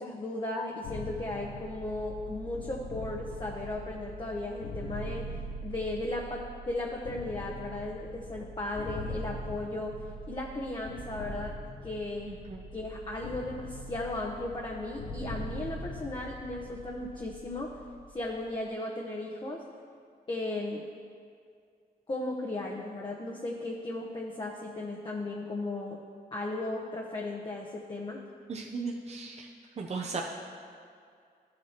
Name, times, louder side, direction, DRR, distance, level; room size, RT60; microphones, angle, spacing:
voice 1, 0.0-5.3 5.6-9.9 10.3-11.5 11.8-12.3 12.7-17.8 18.1-19.6 20.3-20.8 22.1-26.0 26.3-28.2, left 2 dB, 30° left, -2 dB, 0.9 m, -36 dB
sound 1, 0.8-18.5, equal, 70° left, 0.8 m, -42 dB
voice 2, 12.3-12.6 28.5-29.5 29.8-30.2, right 4 dB, 40° right, -1 dB, 0.7 m, -36 dB
13.0 x 7.4 x 2.9 m, 2.2 s
cardioid pair, 80°, 16 cm